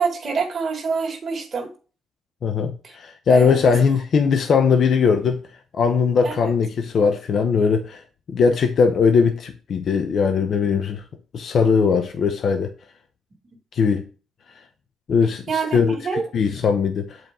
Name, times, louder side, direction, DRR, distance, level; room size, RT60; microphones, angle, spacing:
voice 1, 0.0-1.7 2.8-3.0 3.3-3.8 6.2-6.5 15.5-16.3, right 5 dB, 45° right, 2.1 m, -26 dB
voice 2, 2.4-5.4 5.7-8.0 8.3-11.0 11.3-12.7 13.7-14.0 15.1-15.4 15.7-16.0 16.3-17.2, left 5 dB, 60° left, 0.8 m, -19 dB
7.7 x 4.6 x 3.6 m
cardioid pair, 90°, 0 cm